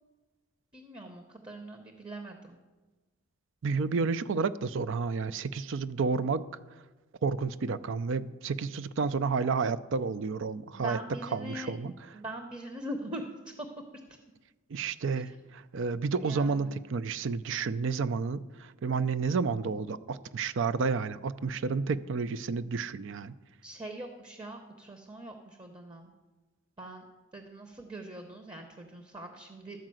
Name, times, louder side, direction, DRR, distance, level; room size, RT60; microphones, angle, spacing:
voice 1, 0.7-2.6 10.7-11.7 12.1-13.2 13.6-13.7 15.1-15.2 16.2-16.7 23.6-26.1 26.8-27.0 27.3-29.9, right 1 dB, 20° right, 5 dB, 0.7 m, -42 dB
voice 2, 3.6-6.4 7.2-11.9 14.7-23.3, right 4 dB, 60° right, 15 dB, 0.4 m, -31 dB
12.5 x 4.9 x 7.6 m, 1.2 s
head